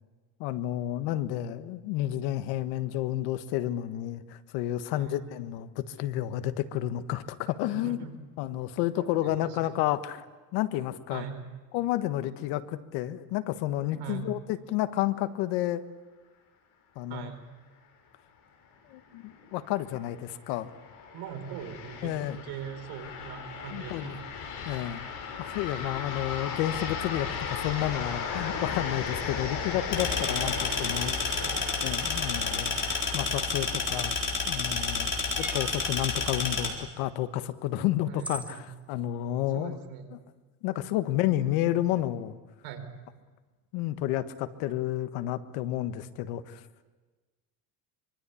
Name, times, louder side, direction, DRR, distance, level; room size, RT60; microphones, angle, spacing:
voice 1, 0.4-8.0 8.4-10.2 10.5-11.2 11.7-15.8 16.9-17.3 18.9-20.7 22.0-22.4 23.7-24.2 24.6-25.0 25.4-31.5 31.8-32.8 33.1-34.1 34.5-39.8 40.1-40.2 40.6-42.4 43.7-46.6, left 13 dB, 85° left, 11 dB, 1.5 m, -31 dB
voice 2, 7.7-8.2 9.0-9.7 11.1-11.4 14.0-14.3 17.1-17.4 21.1-24.3 30.1-30.6 31.4-31.6 35.1-35.3 38.1-38.7 39.5-40.1 42.6-42.8, right 8 dB, 70° right, 6 dB, 4.8 m, -41 dB
sound 1, 19.2-34.1, left 6 dB, 55° left, 6.6 m, -36 dB
sound 2, 29.9-36.7, left 4 dB, 30° left, 4.0 m, -30 dB
sound 3, 31.5-31.8 33.9-34.3 35.3-35.8 37.5-37.6 38.2-38.6, right 2 dB, 5° right, 1.7 m, -41 dB
25.0 x 23.5 x 8.5 m, 1.3 s
cardioid pair, 175°, 39 cm